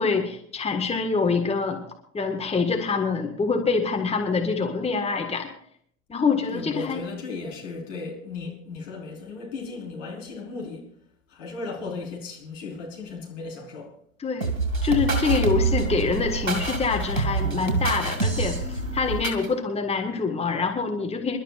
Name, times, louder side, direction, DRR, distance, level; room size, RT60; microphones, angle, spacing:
voice 1, 0.0-1.8 2.1-5.5 6.1-7.0 14.2-14.5 14.8-21.4, left 5 dB, 15° left, 1.7 m, -25 dB
voice 2, 6.5-10.8 11.3-13.9, left 3 dB, 65° left, 4.9 m, -36 dB
sound 1, 14.4-19.5, right 3 dB, 85° right, 2.4 m, -26 dB
27.5 x 12.5 x 2.5 m
figure-of-eight pair, 75°, 40 cm